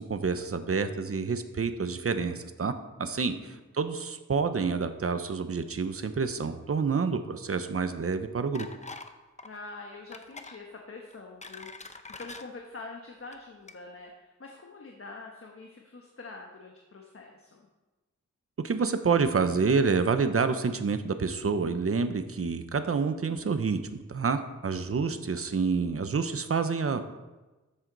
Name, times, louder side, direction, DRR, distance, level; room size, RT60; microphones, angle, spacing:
voice 1, 0.0-2.7 3.0-8.7 18.6-27.1, right 5 dB, 50° right, 9 dB, 0.8 m, -28 dB
voice 2, 3.0-3.6 9.4-17.7 25.1-25.4, left 3 dB, 45° left, 1 dB, 1.3 m, -45 dB
sound 1, 8.5-9.1 9.4-9.6 10.1-10.6 11.1-12.4 13.2-13.4 13.7-13.8, left 3 dB, 25° left, 0.7 m, -44 dB
14.0 x 7.8 x 4.0 m, 1.1 s
wide cardioid pair, 105°, 30 cm